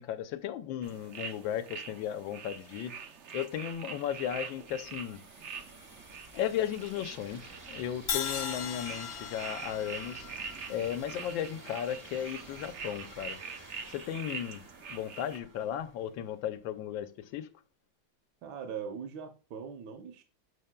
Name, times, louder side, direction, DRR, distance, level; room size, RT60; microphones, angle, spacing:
voice 1, 0.0-2.9 3.3-5.2 6.3-10.3 10.7-13.4 13.9-14.6 14.9-17.5, left 10 dB, 85° left, 1.4 m, -35 dB
sound 1, 0.8-15.4, right 6 dB, 90° right, 0.6 m, -45 dB
sound 2, 3.0-16.5, right 2 dB, 30° right, 0.3 m, -53 dB
Crash cymbal, 8.1-12.1, left 7 dB, 65° left, 1.5 m, -39 dB
voice 2, 18.4-20.2, right 7 dB, 65° right, 1.2 m, -41 dB
7.2 x 6.4 x 2.2 m
omnidirectional pair, 2.1 m